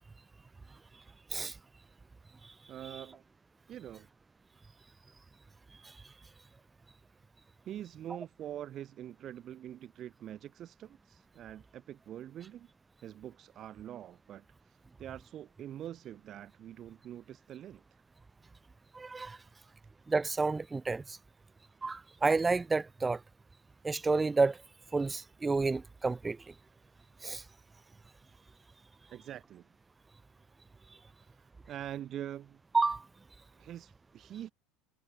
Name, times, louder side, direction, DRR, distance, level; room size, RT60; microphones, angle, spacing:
voice 1, 2.7-3.2 3.7-4.1 7.7-12.7 13.0-18.0 29.1-29.6 31.2-31.4 31.7-32.6 33.6-34.5, right 11 dB, 30° right, 2.1 m, -45 dB
voice 2, 18.9-19.4 20.1-21.2 21.8-23.2 23.8-24.6 24.9-26.4 27.2-27.4 32.7-33.0, right 3 dB, 10° right, 0.5 m, -30 dB
cardioid pair, 175°, 0 cm